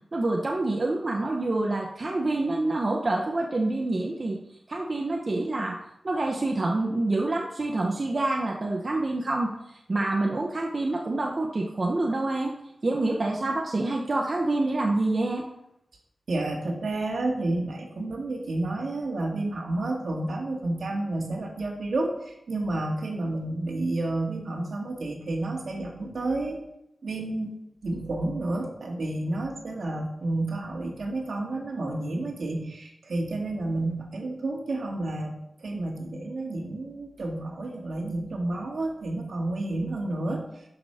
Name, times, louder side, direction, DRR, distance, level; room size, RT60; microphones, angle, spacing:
voice 1, 0.1-4.4 4.7-12.5 12.8-15.5, right 2 dB, 40° right, 0 dB, 1.0 m, -27 dB
voice 2, 16.3-26.6 27.0-40.6, right 2 dB, 70° right, 0 dB, 2.4 m, -30 dB
12.0 x 6.4 x 5.0 m, 0.83 s
wide cardioid pair, 125°, 0 cm